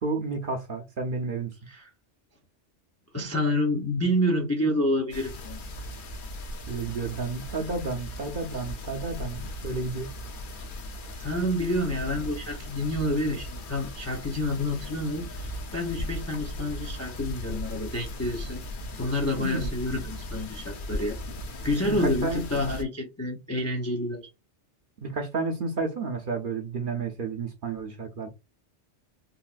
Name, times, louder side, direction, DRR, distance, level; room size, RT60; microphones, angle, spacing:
voice 1, 0.0-1.5 6.7-10.1 19.4-19.7 21.8-22.4 25.0-28.3, right 3 dB, 55° right, 0.7 m, -31 dB
voice 2, 3.1-5.6 11.2-18.6 19.0-21.2 21.6-24.3, left 1 dB, 25° left, 0.3 m, -28 dB
sound 1, 5.1-22.8, left 1 dB, 55° left, 0.7 m, -37 dB
3.9 x 2.0 x 2.4 m
omnidirectional pair, 1.2 m